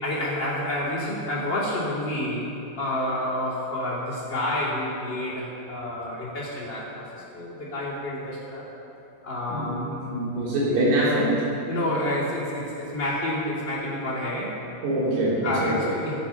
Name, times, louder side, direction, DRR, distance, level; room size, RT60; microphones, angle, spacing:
voice 1, 0.0-2.4 2.8-8.6 9.2-10.1 10.7-10.8 11.7-14.6 15.4-16.1, left 1 dB, 30° left, -7 dB, 2.8 m, -29 dB
voice 2, 9.5-11.5 14.8-15.8, right 1 dB, 80° right, -7 dB, 6.0 m, -24 dB
16.0 x 9.5 x 5.7 m, 2.8 s
omnidirectional pair, 5.4 m